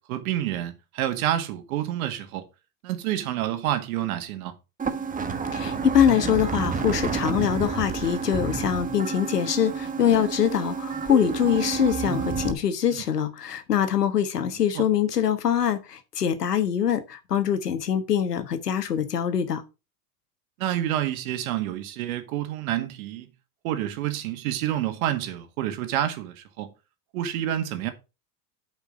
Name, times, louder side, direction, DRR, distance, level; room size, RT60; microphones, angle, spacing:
voice 1, 0.0-2.4 2.8-4.5 12.9-13.0 14.7-14.8 20.6-23.3 23.6-26.7 27.1-27.9, right 12 dB, 65° right, 1.8 m, -28 dB
sound 1, 4.8-12.5, right 5 dB, 15° right, 1.2 m, -29 dB
voice 2, 5.5-19.6, left 9 dB, 90° left, 1.4 m, -24 dB
8.4 x 5.2 x 5.1 m
hypercardioid pair, 90°, 46 cm